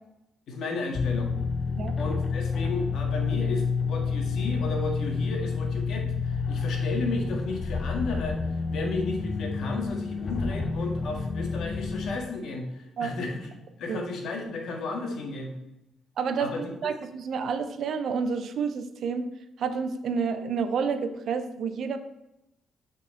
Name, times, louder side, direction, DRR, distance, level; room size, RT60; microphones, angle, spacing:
voice 1, 0.5-1.3 2.0-13.5 13.8-15.5 16.4-16.7, left 3 dB, 70° left, 2 dB, 1.7 m, -33 dB
sound 1, 0.9-12.2, left 5 dB, 40° left, 0.8 m, -29 dB
voice 2, 16.2-19.2 19.6-22.0, right 5 dB, 65° right, 9 dB, 0.7 m, -29 dB
8.4 x 4.4 x 4.3 m, 0.89 s
cardioid pair, 90°, 0 cm